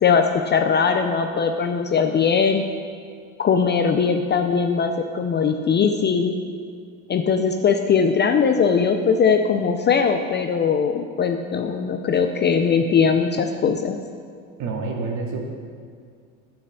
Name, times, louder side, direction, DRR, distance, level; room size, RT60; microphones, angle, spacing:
voice 1, 0.0-2.6 3.4-6.4 7.1-14.0, left 6 dB, 25° left, 6 dB, 0.6 m, -20 dB
voice 2, 14.6-15.4, right 4 dB, 45° right, 1 dB, 2.3 m, -28 dB
9.4 x 8.6 x 6.7 m, 2.2 s
supercardioid pair, 115°, 41 cm